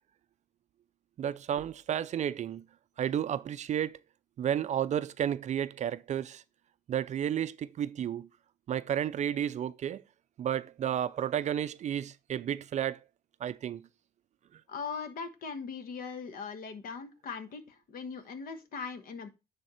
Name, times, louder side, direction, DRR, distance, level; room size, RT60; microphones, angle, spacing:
voice 1, 1.2-2.6 3.0-4.0 4.4-6.4 6.9-8.3 8.7-10.0 10.4-13.0 13.4-13.9 14.5-14.6, right 10 dB, 45° right, 0.4 m, -32 dB
voice 2, 14.7-19.3, left 5 dB, 60° left, 1.3 m, -40 dB
10.0 x 3.5 x 4.3 m
cardioid pair, 110°, 17 cm